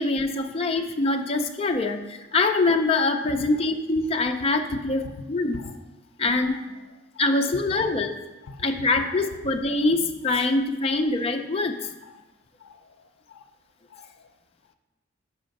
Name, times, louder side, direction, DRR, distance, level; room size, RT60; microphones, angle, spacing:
voice 1, 0.0-5.0 5.3-5.6 6.2-6.8 7.2-8.1 8.6-11.9, left 2 dB, 30° left, 3 dB, 0.4 m, -24 dB
voice 2, 2.9-3.7 4.4-4.5 5.0-5.3 5.5-5.9 6.5-7.3 7.7-8.7 9.0-9.4 10.9-11.1 12.0-12.3 12.6-13.4 13.9-14.3, left 2 dB, 90° left, 9 dB, 0.5 m, -45 dB
5.6 x 5.4 x 5.2 m, 1.1 s
head